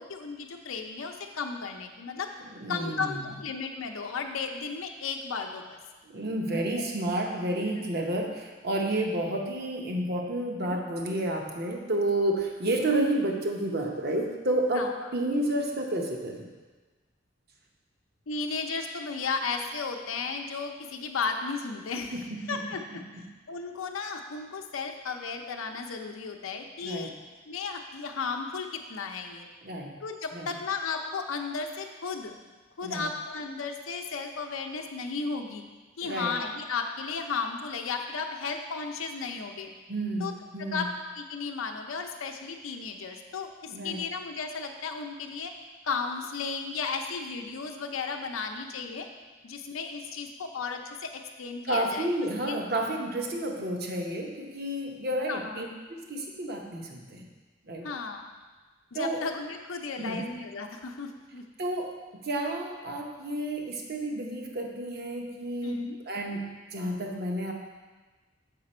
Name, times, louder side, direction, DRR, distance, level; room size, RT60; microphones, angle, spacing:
voice 1, 0.0-2.3 2.7-5.8 10.7-10.8 14.8-14.9 18.3-22.1 22.5-22.8 23.1-27.1 27.5-29.5 30.0-32.4 32.8-35.6 36.0-39.7 40.2-40.3 40.6-40.9 41.2-45.5 45.8-49.1 49.4-52.6 55.3-55.7 57.8-58.3 58.9-61.4 65.6-66.0, left 5 dB, 85° left, 3 dB, 0.6 m, -34 dB
voice 2, 2.5-3.3 6.0-16.5 22.1-22.6 26.8-27.1 29.6-29.9 30.3-30.5 32.8-33.1 36.0-36.4 39.9-40.9 43.7-44.1 51.6-57.3 57.6-57.9 58.9-59.2 60.0-60.2 61.6-66.5 66.7-67.5, right 1 dB, 50° right, 1 dB, 0.9 m, -31 dB
6.8 x 5.9 x 4.3 m, 1.3 s
head